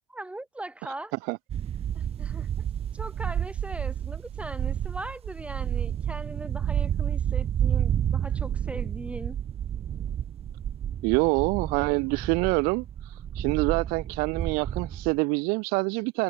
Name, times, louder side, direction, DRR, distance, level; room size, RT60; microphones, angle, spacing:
voice 1, 0.1-1.1 1.9-2.5 2.9-9.4, right 2 dB, 10° right, 3.7 m, -39 dB
sound 1, 1.5-15.2, right 9 dB, 40° right, 2.1 m, -30 dB
voice 2, 11.0-12.9 13.4-16.2, right 31 dB, 70° right, 0.6 m, -26 dB
supercardioid pair, 105°, 16 cm